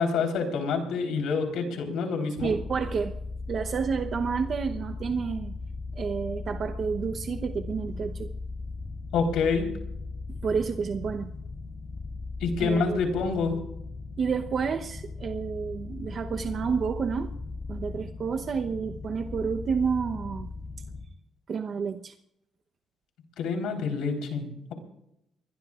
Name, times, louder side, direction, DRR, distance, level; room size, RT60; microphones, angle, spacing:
voice 1, 0.0-2.6 9.1-9.7 12.4-13.6 23.4-24.7, left 5 dB, 85° left, 4 dB, 4.0 m, -27 dB
sound 1, 2.4-21.0, left 3 dB, 25° left, 2.7 m, -38 dB
voice 2, 2.4-3.1 3.5-5.5 6.0-8.3 10.3-11.3 12.6-13.0 14.2-17.3 17.7-20.5 21.5-22.1, right 6 dB, 50° right, 5 dB, 0.9 m, -30 dB
24.5 x 21.0 x 2.5 m, 0.79 s
cardioid pair, 90°, 0 cm